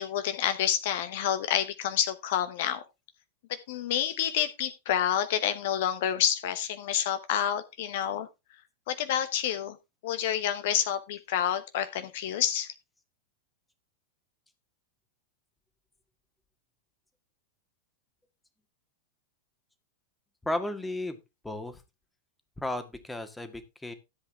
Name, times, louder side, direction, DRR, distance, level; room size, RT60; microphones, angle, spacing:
voice 1, 0.0-2.8 3.7-8.3 8.9-9.8 10.0-12.7, left 10 dB, 55° left, 11 dB, 1.0 m, -28 dB
voice 2, 20.4-21.2 21.4-21.8 22.6-23.9, left 1 dB, 5° left, 8 dB, 1.8 m, -34 dB
13.5 x 8.0 x 3.5 m, 0.25 s
figure-of-eight pair, 90°, 0 cm